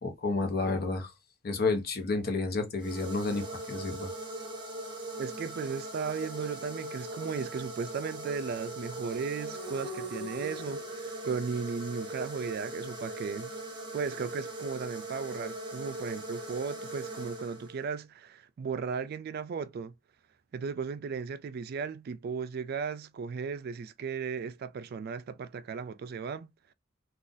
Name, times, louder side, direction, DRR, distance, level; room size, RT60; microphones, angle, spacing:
voice 1, 0.0-1.1 1.4-4.1, left 3 dB, 55° left, 0.8 m, -30 dB
sound 1, 2.8-18.0, right 1 dB, 25° right, 1.2 m, -40 dB
voice 2, 5.2-13.5 13.9-19.9 20.5-26.5, right 5 dB, 55° right, 0.3 m, -36 dB
2.5 x 2.4 x 3.8 m
head